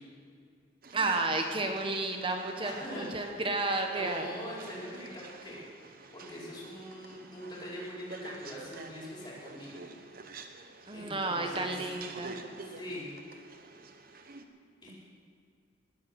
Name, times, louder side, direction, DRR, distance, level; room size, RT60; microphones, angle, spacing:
sound 1, 0.8-14.4, right 4 dB, 45° right, 1.0 m, -48 dB
voice 1, 0.9-4.3 10.9-12.3, right 2 dB, 25° right, 3 dB, 1.2 m, -32 dB
voice 2, 2.6-3.0 3.9-5.6 6.1-9.7 10.9-11.9 12.6-13.1 14.8-15.0, equal, 25° left, -6 dB, 4.7 m, -42 dB
20.0 x 8.1 x 8.0 m, 2.2 s
head